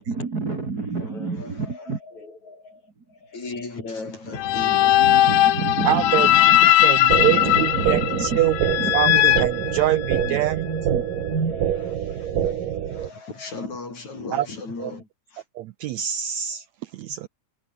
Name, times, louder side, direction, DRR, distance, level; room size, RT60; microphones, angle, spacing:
voice 1, 0.0-2.0 5.0-6.7 7.0-11.6, right 4 dB, 30° right, 2.7 m, -29 dB
voice 2, 1.0-6.7 7.2-7.4 8.1-8.2 10.9-11.0 11.4-15.5, left 3 dB, 50° left, 8.4 m, -38 dB
sound 1, 4.4-10.4, left 13 dB, 80° left, 2.9 m, -19 dB
voice 3, 5.9-6.3 6.8-7.0 7.2-10.7 15.5-17.3, right 13 dB, 90° right, 1.5 m, -25 dB
sound 2, 7.1-13.1, right 10 dB, 70° right, 3.5 m, -26 dB
omnidirectional pair, 4.0 m